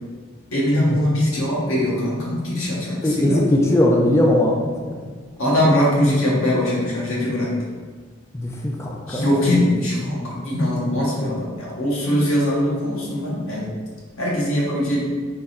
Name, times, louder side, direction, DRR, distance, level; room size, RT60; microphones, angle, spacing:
voice 1, 0.5-3.4 5.4-7.5 9.1-13.7 14.2-15.0, left 1 dB, 85° left, -5 dB, 1.3 m, -21 dB
voice 2, 3.0-5.0 8.3-9.3, left 1 dB, 15° left, -2 dB, 0.4 m, -19 dB
3.5 x 3.0 x 4.3 m, 1.5 s
head